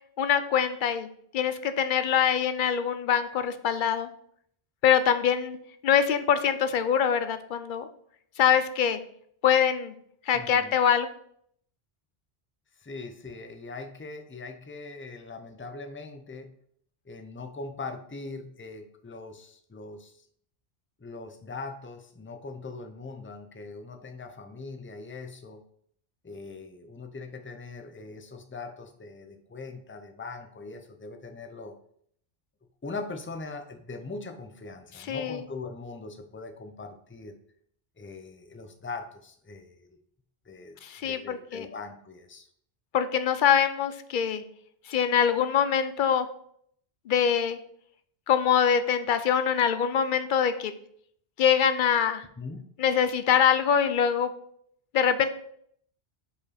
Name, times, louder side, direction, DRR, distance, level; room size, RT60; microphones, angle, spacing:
voice 1, 0.2-1.1 1.3-4.1 4.8-5.6 5.8-7.9 8.4-9.0 9.4-9.9 10.3-11.1 35.1-35.4 40.8-41.7 42.9-44.4 44.9-46.3 47.1-47.6 48.3-50.7 51.4-52.2 52.8-54.3 54.9-55.3, left 8 dB, 60° left, 11 dB, 0.6 m, -24 dB
voice 2, 10.3-10.7 12.8-16.5 17.1-20.2 21.0-25.6 26.2-31.7 32.8-37.3 38.0-39.9 40.5-42.5 52.4-52.6, left 3 dB, 15° left, 5 dB, 0.4 m, -41 dB
5.0 x 5.0 x 4.1 m, 0.67 s
omnidirectional pair, 1.0 m